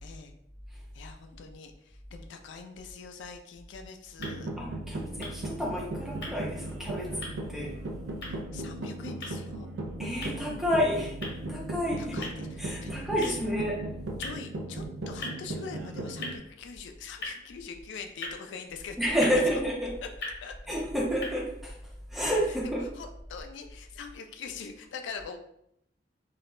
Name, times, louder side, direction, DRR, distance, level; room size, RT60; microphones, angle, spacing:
voice 1, 0.0-0.3 0.9-4.5 8.3-9.7 12.0-13.4 14.2-19.2 20.4-20.5 22.6-25.4, left 5 dB, 85° left, 6 dB, 0.3 m, -43 dB
sound 1, 3.9-21.3, left 2 dB, 60° left, 0.8 m, -45 dB
sound 2, 4.2-16.4, right 2 dB, 75° right, 0.3 m, -37 dB
voice 2, 4.6-7.8 10.0-11.1 11.5-12.2 12.6-13.8 19.0-19.9 20.7-21.8 22.1-22.9, equal, ahead, -3 dB, 0.5 m, -30 dB
2.3 x 2.1 x 2.9 m, 0.75 s
head